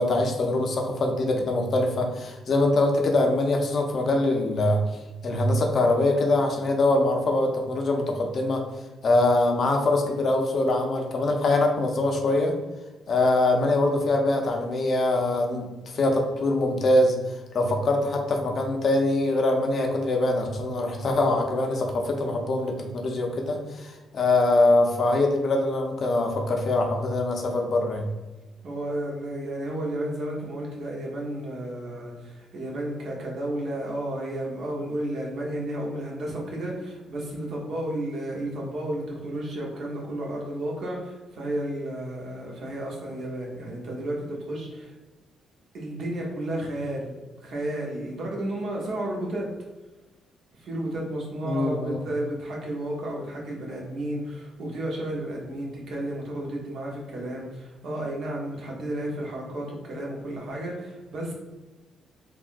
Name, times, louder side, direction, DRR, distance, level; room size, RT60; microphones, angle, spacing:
voice 1, 0.0-4.8 5.2-8.6 9.0-12.6 13.1-17.2 17.5-28.0 51.4-52.0, left 2 dB, 50° left, 3 dB, 0.5 m, -23 dB
voice 2, 28.6-44.9 45.7-49.5 50.5-61.3, right 1 dB, 65° right, -2 dB, 0.9 m, -32 dB
3.4 x 2.3 x 2.5 m, 1.2 s
cardioid pair, 90°, 0 cm